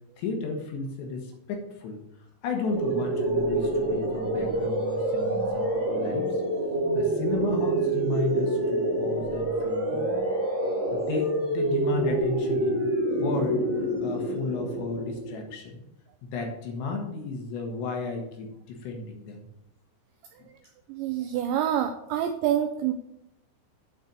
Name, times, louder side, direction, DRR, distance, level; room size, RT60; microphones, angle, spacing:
voice 1, 0.2-2.0 2.4-6.4 7.0-10.1 10.9-13.7 14.0-15.8 16.2-19.5, left 4 dB, 75° left, 2 dB, 3.1 m, -33 dB
sound 1, 2.7-15.5, right 2 dB, 20° right, 2.4 m, -27 dB
voice 2, 20.9-22.9, right 10 dB, 85° right, 6 dB, 2.5 m, -27 dB
9.3 x 4.3 x 6.6 m, 0.80 s
omnidirectional pair, 5.7 m